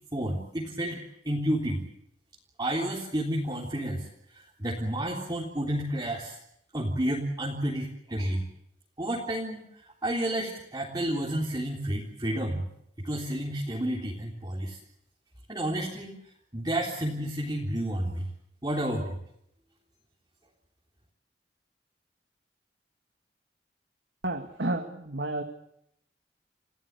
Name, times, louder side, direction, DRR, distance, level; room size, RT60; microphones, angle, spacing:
voice 1, 0.1-1.8 2.6-4.1 4.3-6.4 6.7-8.4 9.0-9.6 10.0-12.7 13.0-14.8 15.5-16.2 16.5-18.3 18.6-19.2, right 1 dB, 25° right, -3 dB, 3.7 m, -30 dB
voice 2, 24.2-25.4, right 2 dB, 80° right, 5 dB, 2.1 m, -31 dB
29.5 x 16.5 x 8.3 m, 0.75 s
head